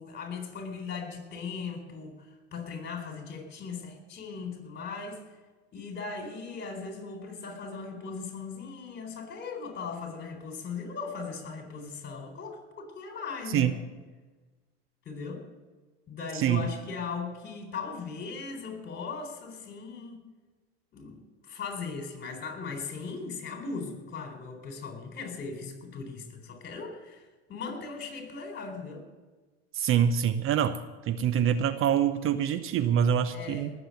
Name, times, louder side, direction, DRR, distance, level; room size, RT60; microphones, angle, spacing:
voice 1, 0.0-2.2 2.5-5.2 5.7-13.7 15.1-15.4 16.1-20.2 20.9-27.2 27.5-29.1 33.3-33.7, left 5 dB, 35° left, 4 dB, 4.1 m, -38 dB
voice 2, 16.3-16.7 29.7-30.8 31.1-33.7, right 9 dB, 40° right, 12 dB, 0.8 m, -25 dB
19.0 x 7.7 x 6.7 m, 1.3 s
hypercardioid pair, 95°, 32 cm